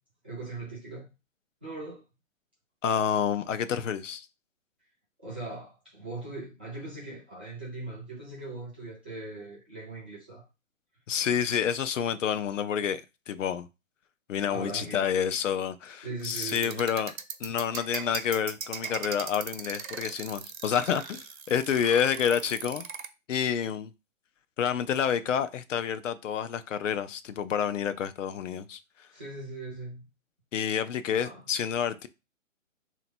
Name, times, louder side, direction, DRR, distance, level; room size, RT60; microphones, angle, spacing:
voice 1, 0.2-1.1 1.6-2.0 5.2-10.4 14.5-15.1 16.0-16.8 29.1-30.0 31.1-31.4, right 2 dB, 10° right, 0.4 m, -40 dB
voice 2, 2.8-4.3 11.1-13.0 13.3-13.7 14.3-17.1 17.4-22.8 23.3-23.9 24.6-29.1 30.5-32.1, left 8 dB, 65° left, 0.6 m, -29 dB
sound 1, 16.2-23.1, right 7 dB, 80° right, 0.9 m, -38 dB
3.3 x 2.9 x 4.2 m
hypercardioid pair, 150°, 40 cm